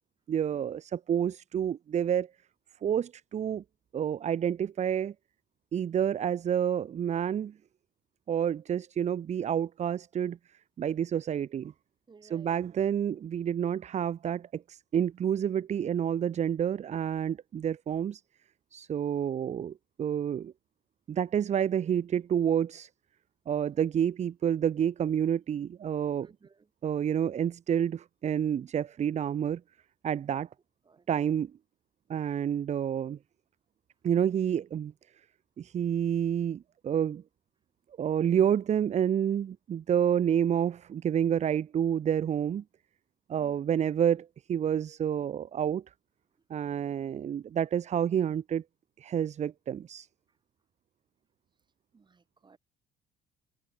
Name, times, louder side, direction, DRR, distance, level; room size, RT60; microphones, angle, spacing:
voice 1, 0.3-2.3 2.8-3.6 3.9-5.1 5.7-7.5 8.3-10.4 10.8-11.7 12.2-18.2 18.7-20.5 21.1-22.9 23.5-26.3 26.8-29.6 30.0-30.5 31.1-31.5 32.1-33.2 34.0-34.9 35.6-37.2 38.0-42.6 43.3-45.8 46.5-48.6 49.0-50.1, right 9 dB, 45° right, 0.9 m, -29 dB
voice 2, 12.1-12.6 26.2-26.7 30.8-31.1 43.3-43.7 51.9-52.6, right 4 dB, 25° right, 5.4 m, -57 dB
cardioid pair, 110°, 17 cm